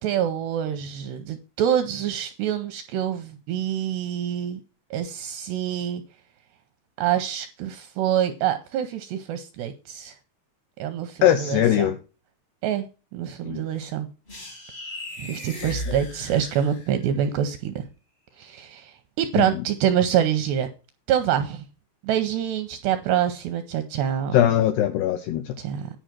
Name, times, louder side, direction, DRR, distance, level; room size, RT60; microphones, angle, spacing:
voice 1, 0.0-4.6 4.9-6.0 7.0-10.2 10.8-11.9 12.6-12.9 13.1-14.1 15.2-17.9 18.4-20.7 21.1-21.6 22.0-24.4 25.6-25.9, right 10 dB, 85° right, 2.4 m, -26 dB
voice 2, 11.2-12.0 13.4-13.6 19.4-19.6 24.3-25.6, left 11 dB, 85° left, 2.3 m, -21 dB
sound 1, 14.3-17.2, equal, 40° left, 0.8 m, -36 dB
10.5 x 5.1 x 6.0 m
omnidirectional pair, 5.6 m